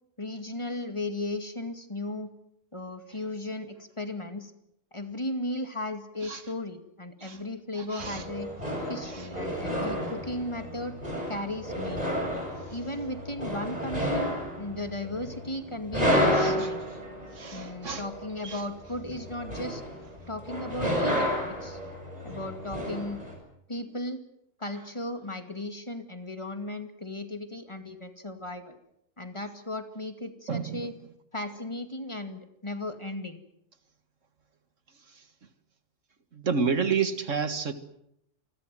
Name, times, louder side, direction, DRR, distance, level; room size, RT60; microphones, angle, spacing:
voice 1, 0.2-2.3 2.7-4.5 4.9-8.5 8.9-11.0 11.3-12.2 12.7-14.3 14.6-16.8 17.5-19.8 20.3-21.8 22.2-23.2 23.7-24.2 24.6-28.8 29.2-30.9 31.3-33.4, left 1 dB, 25° left, 2.2 m, -36 dB
voice 2, 7.8-8.2 9.1-9.3 16.2-16.7 17.3-18.0 18.4-18.6 30.5-30.9 35.2-35.3 36.3-37.7, right 5 dB, 80° right, 2.1 m, -30 dB
sound 1, 8.0-23.4, equal, 30° right, 7.8 m, -31 dB
28.0 x 22.0 x 7.7 m
omnidirectional pair, 1.3 m